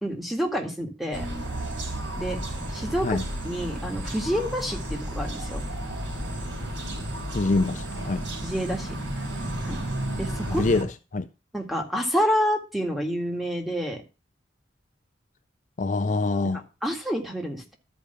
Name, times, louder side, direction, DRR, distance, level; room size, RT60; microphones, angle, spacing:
voice 1, 0.0-1.3 2.2-2.4 2.7-3.2 3.4-5.6 8.4-9.0 9.7-9.8 10.2-10.6 11.5-14.0 16.4-17.8, equal, ahead, 1.8 m, -28 dB
sound 1, 1.1-10.8, right 1 dB, 80° right, 4.2 m, -32 dB
voice 2, 7.3-8.2 10.5-10.9 11.1-11.2 15.8-16.6, left 3 dB, 40° left, 0.5 m, -25 dB
13.0 x 5.1 x 6.7 m
head